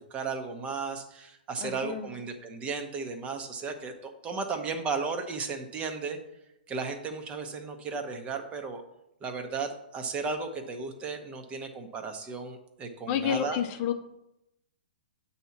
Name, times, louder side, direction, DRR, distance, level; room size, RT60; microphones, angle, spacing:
voice 1, 0.0-6.2 6.7-8.8 9.2-13.6, right 4 dB, 25° right, 6 dB, 0.8 m, -35 dB
voice 2, 1.6-2.1 13.1-13.9, left 9 dB, 35° left, 7 dB, 0.6 m, -30 dB
8.0 x 2.8 x 5.8 m, 0.87 s
hypercardioid pair, 115°, 5 cm